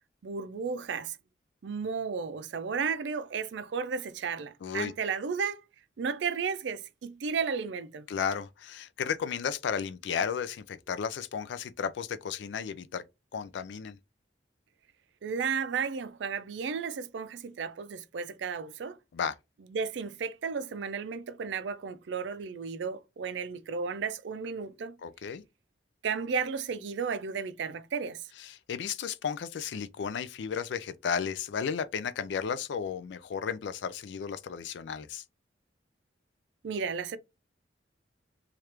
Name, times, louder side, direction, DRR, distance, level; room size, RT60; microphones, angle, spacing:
voice 1, 0.2-1.2 1.6-5.6 6.0-8.1 15.2-19.0 19.7-24.9 26.0-28.2 36.6-37.2, right 5 dB, 75° right, 0.4 m, -33 dB
voice 2, 4.6-4.9 8.1-13.0 13.3-14.0 19.1-19.4 25.0-25.4 28.4-35.2, left 7 dB, 70° left, 0.3 m, -34 dB
3.2 x 2.4 x 2.9 m
head